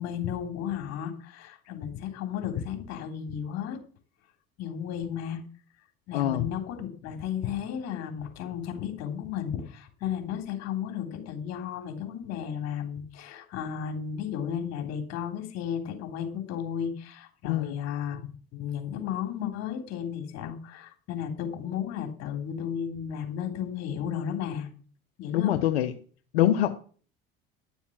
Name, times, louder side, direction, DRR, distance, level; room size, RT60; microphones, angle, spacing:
voice 1, 0.0-3.8 4.6-5.4 6.1-18.2 18.5-24.7 25.2-25.5, left 8 dB, 60° left, 5 dB, 3.5 m, -34 dB
voice 2, 17.4-17.8 25.3-25.9 26.3-26.7, left 12 dB, 90° left, 8 dB, 0.9 m, -24 dB
11.0 x 7.2 x 7.4 m, 0.42 s
hypercardioid pair, 80°, 30 cm